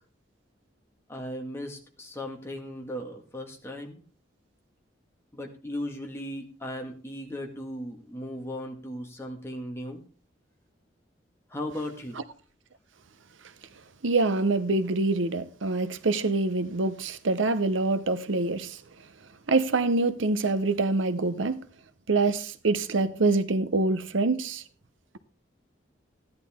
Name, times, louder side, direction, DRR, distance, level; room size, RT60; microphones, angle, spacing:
voice 1, 1.1-4.0 5.3-10.0 11.5-12.2, left 1 dB, 15° left, 1.8 m, -37 dB
voice 2, 14.0-18.8 19.5-21.6 22.1-24.6, right 3 dB, 90° right, 0.8 m, -25 dB
14.5 x 10.5 x 3.6 m
head